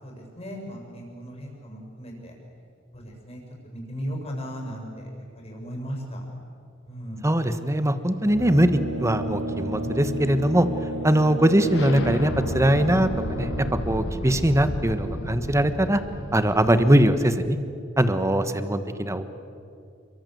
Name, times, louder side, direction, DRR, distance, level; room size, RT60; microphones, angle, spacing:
voice 1, 0.0-2.3 2.9-3.4 3.7-5.1 5.4-6.2 6.9-7.2, equal, 30° left, 0 dB, 7.1 m, -36 dB
sound 1, 7.0-17.2, left 1 dB, 65° left, 2.0 m, -34 dB
voice 2, 7.2-10.7 11.0-13.5 13.9-16.0 16.3-17.6 18.0-19.2, right 1 dB, 15° right, 10 dB, 1.3 m, -21 dB
Brass instrument, 8.2-14.0, right 2 dB, 90° right, 5.6 m, -33 dB
28.5 x 23.5 x 7.9 m, 2.5 s
head